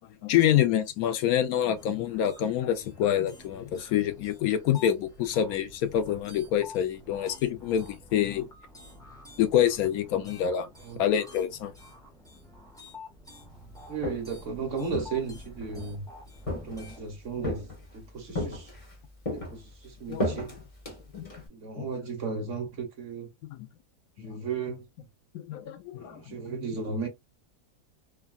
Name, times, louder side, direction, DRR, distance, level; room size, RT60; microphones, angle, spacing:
voice 1, 0.2-8.5 9.4-10.7 11.0-11.7 20.1-20.4 21.1-21.3 21.8-21.9 23.5-23.6 24.2-24.4 25.3-26.4, left 10 dB, 75° left, 1.0 m, -26 dB
sound 1, 1.8-17.1, left 2 dB, 5° left, 0.7 m, -49 dB
Walk footsteps, 13.8-14.4 14.9-15.9 16.5-17.0 17.4-18.0 18.4-19.0 19.3-21.5, left 1 dB, 25° left, 1.0 m, -34 dB
voice 2, 13.9-16.1 16.5-17.7 17.9-18.8 19.3-20.6 21.5-23.3 24.2-25.1 25.9-27.1, right 5 dB, 55° right, 1.2 m, -35 dB
3.5 x 2.2 x 2.3 m
omnidirectional pair, 1.6 m